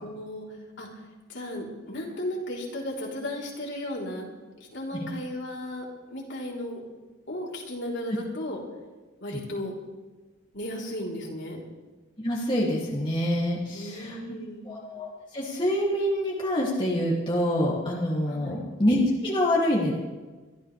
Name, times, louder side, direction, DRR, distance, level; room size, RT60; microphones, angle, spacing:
voice 1, 0.0-0.5 0.8-0.9 1.3-4.3 4.7-5.9 6.1-6.8 7.3-8.6 9.2-9.7 10.5-11.6 13.7-14.7 18.3-18.6, left 1 dB, 60° left, -3 dB, 3.7 m, -35 dB
voice 2, 12.2-14.2 14.6-19.9, left 1 dB, 25° left, -5 dB, 2.6 m, -26 dB
24.0 x 13.0 x 3.4 m, 1.3 s
head